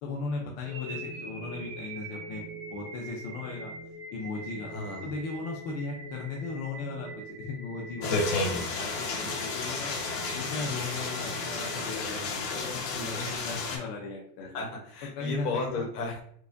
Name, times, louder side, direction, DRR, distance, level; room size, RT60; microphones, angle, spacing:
voice 1, 0.0-2.4 2.7-3.7 4.1-4.7 5.0-10.0 10.3-14.6 15.2-15.8, left 3 dB, 35° left, -1 dB, 0.4 m, -37 dB
sound 1, 0.6-12.7, right 2 dB, 30° right, 0.9 m, -43 dB
voice 2, 4.7-5.1 12.9-13.7 14.5-16.2, left 3 dB, 75° left, -1 dB, 1.1 m, -35 dB
sound 2, 8.0-13.8, left 3 dB, 55° left, 1.0 m, -32 dB
4.6 x 2.2 x 2.5 m, 0.63 s
supercardioid pair, 140°, 47 cm